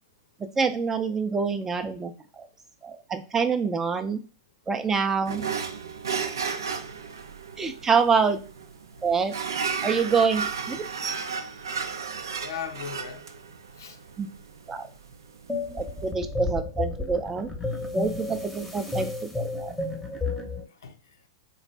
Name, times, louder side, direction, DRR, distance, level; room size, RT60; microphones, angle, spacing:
voice 1, 0.4-2.1 2.4-2.5 2.8-4.2 4.7-5.4 7.6-8.4 9.0-9.3 9.8-10.4 10.7-10.8 14.2-14.3 14.7-14.8 15.8-17.5 17.9-19.8, right 5 dB, 20° right, 0.5 m, -26 dB
sound 1, 5.3-16.1, right 6 dB, 75° right, 0.5 m, -34 dB
voice 2, 12.4-13.3 13.8-14.0 20.5-21.3, left 7 dB, 75° left, 0.6 m, -39 dB
sound 2, 15.5-20.6, left 3 dB, ahead, 0.8 m, -32 dB
4.0 x 2.5 x 3.3 m
hypercardioid pair, 105°, 2 cm